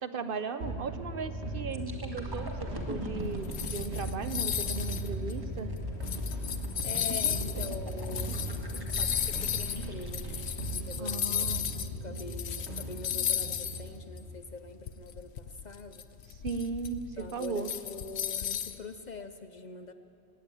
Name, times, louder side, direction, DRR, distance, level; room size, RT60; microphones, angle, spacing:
voice 1, 0.0-5.7 11.0-11.7 16.4-17.7, right 4 dB, 55° right, 11 dB, 0.9 m, -37 dB
sound 1, 0.6-13.9, right 1 dB, 90° right, 2.5 m, -38 dB
sound 2, 1.7-11.5 12.0-12.2, left 1 dB, 20° right, 1.8 m, -41 dB
sound 3, 3.2-11.9 12.2-13.9 14.2-14.3 14.9-18.8, left 10 dB, 75° left, 1.0 m, -34 dB
voice 2, 6.8-10.4 10.9-11.5 12.0-16.0 17.2-19.9, left 3 dB, 50° left, 10 dB, 0.7 m, -44 dB
18.0 x 16.0 x 9.0 m, 3.0 s
omnidirectional pair, 1.1 m